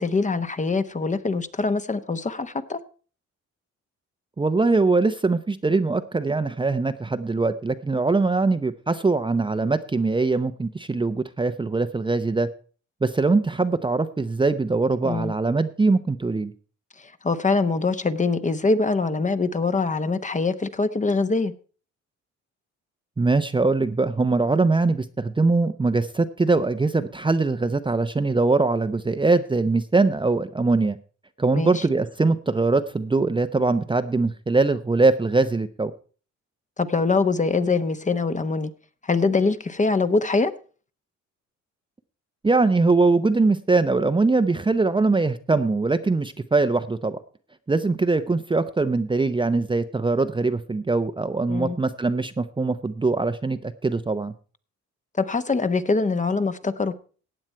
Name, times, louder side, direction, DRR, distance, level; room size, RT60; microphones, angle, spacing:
voice 1, 0.0-2.8 15.0-15.3 17.0-21.5 31.5-31.8 36.8-38.7 39.0-40.5 51.5-51.8 55.2-56.9, left 3 dB, 25° left, 1.0 m, -23 dB
voice 2, 4.4-12.5 13.0-16.5 23.2-31.0 31.4-35.9 42.4-47.2 47.7-54.3, right 3 dB, 15° right, 0.7 m, -22 dB
15.5 x 8.9 x 4.5 m
cardioid pair, 90°, 30 cm